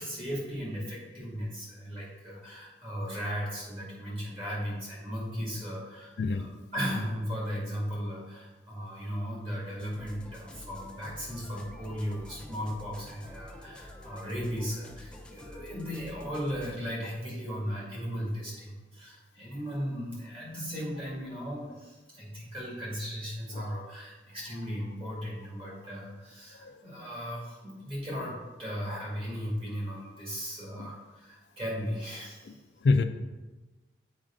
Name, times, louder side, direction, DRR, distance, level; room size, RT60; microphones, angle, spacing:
voice 1, 0.0-32.6, equal, 30° right, -5 dB, 2.2 m, -36 dB
voice 2, 6.2-6.5 26.6-26.7 30.8-30.9 32.8-33.0, left 3 dB, 65° left, 8 dB, 0.4 m, -24 dB
sound 1, 9.8-16.8, left 1 dB, 5° left, 0.5 m, -47 dB
7.3 x 4.9 x 3.7 m, 1.2 s
head